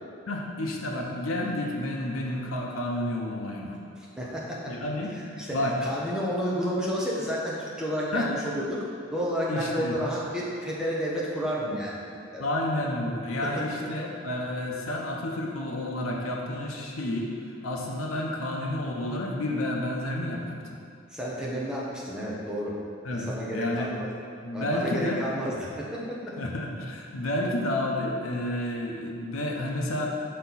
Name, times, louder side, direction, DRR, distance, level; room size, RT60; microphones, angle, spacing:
voice 1, 0.3-3.8 4.7-5.2 5.5-5.8 8.1-8.3 9.5-10.0 12.4-17.3 17.6-20.8 23.0-23.9 24.4-25.3 26.4-30.1, left 1 dB, 85° left, -1 dB, 0.7 m, -30 dB
voice 2, 4.0-4.7 5.1-8.8 9.1-12.0 12.3-12.5 13.4-13.5 21.1-22.7 23.1-24.1 24.5-26.2, equal, 5° right, -6 dB, 0.9 m, -31 dB
5.6 x 4.3 x 4.0 m, 2.4 s
head